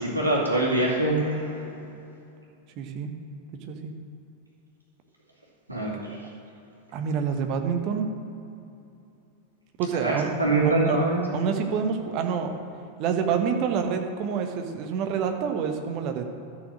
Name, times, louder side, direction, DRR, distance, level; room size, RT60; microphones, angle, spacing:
voice 1, 0.0-1.8 5.7-6.3 9.9-11.2, right 2 dB, 85° right, -4 dB, 2.5 m, -24 dB
voice 2, 2.8-3.1 3.7-3.9 6.1-6.2 6.9-8.1 9.8-10.3 10.6-11.0 11.3-12.5 13.0-16.3, right 6 dB, 40° right, 5 dB, 1.2 m, -27 dB
13.0 x 6.5 x 6.3 m, 2.7 s
figure-of-eight pair, 90°, 0 cm